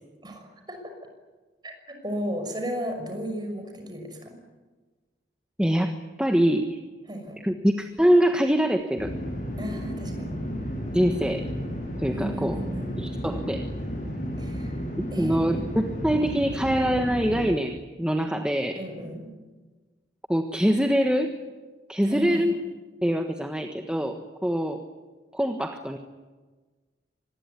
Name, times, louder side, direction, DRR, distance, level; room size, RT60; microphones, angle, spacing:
voice 1, 0.2-0.9 1.6-4.4 7.1-7.4 9.6-10.3 12.1-13.0 14.4-14.8 15.1-15.7 18.7-19.3 22.0-22.5, right 1 dB, 25° right, 5 dB, 6.2 m, -34 dB
voice 2, 5.6-5.9 6.2-6.8 7.4-9.1 10.9-11.4 12.0-12.6 13.0-13.7 15.0-18.8 20.3-21.4 21.9-22.5 23.0-24.8 25.3-26.0, equal, 5° right, 5 dB, 1.3 m, -24 dB
sound 1, 9.0-17.5, equal, 45° left, 7.5 m, -33 dB
25.5 x 20.5 x 9.7 m, 1.3 s
head